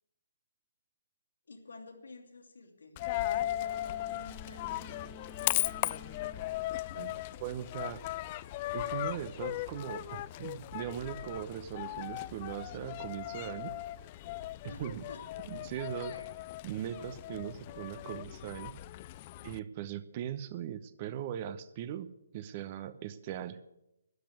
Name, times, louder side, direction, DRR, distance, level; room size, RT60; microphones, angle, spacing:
voice 1, 1.5-5.2 14.7-16.3, left 3 dB, 70° left, 2 dB, 3.1 m, -51 dB
Coin (dropping), 3.0-19.6, left 15 dB, 30° left, 0.5 m, -37 dB
sound 1, 3.3-7.7, left 3 dB, 10° left, 1.8 m, -53 dB
voice 2, 7.4-8.0 8.7-13.7 14.6-15.0 15.5-16.1 16.6-18.7 19.4-23.6, right 10 dB, 35° right, 13 dB, 0.9 m, -39 dB
13.0 x 10.5 x 9.5 m, 0.88 s
figure-of-eight pair, 140°, 0 cm